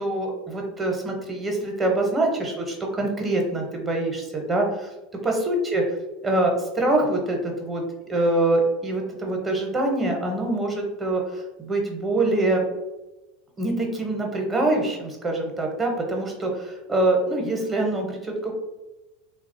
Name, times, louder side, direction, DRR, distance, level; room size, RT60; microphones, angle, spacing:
voice 1, 0.0-4.9 5.2-5.8 6.2-7.8 8.1-12.7 13.6-18.6, right 2 dB, 25° right, 1 dB, 0.8 m, -24 dB
2.9 x 2.3 x 2.6 m, 1.0 s
hypercardioid pair, 95°, 0 cm